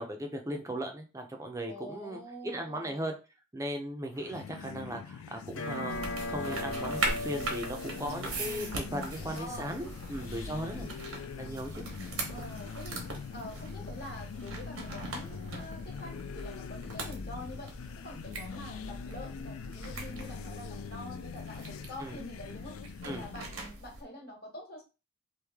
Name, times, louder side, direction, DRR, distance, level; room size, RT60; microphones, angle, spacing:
voice 1, 0.0-3.1 3.5-10.9 11.4-11.8 22.0-22.1 23.0-23.2, right 1 dB, 15° right, 3 dB, 0.5 m, -37 dB
voice 2, 1.7-3.1 8.9-9.9 12.3-13.1 13.3-17.7 18.0-22.8 23.0-24.8, left 1 dB, 45° left, 0 dB, 1.3 m, -46 dB
sound 1, 4.1-23.6, left 6 dB, 85° left, 0.3 m, -43 dB
Tanpura note A sharp, 5.5-10.5, left 1 dB, 65° left, 0.7 m, -40 dB
sound 2, 5.9-24.0, right 2 dB, 85° right, 1.1 m, -41 dB
3.1 x 2.7 x 3.5 m, 0.30 s
head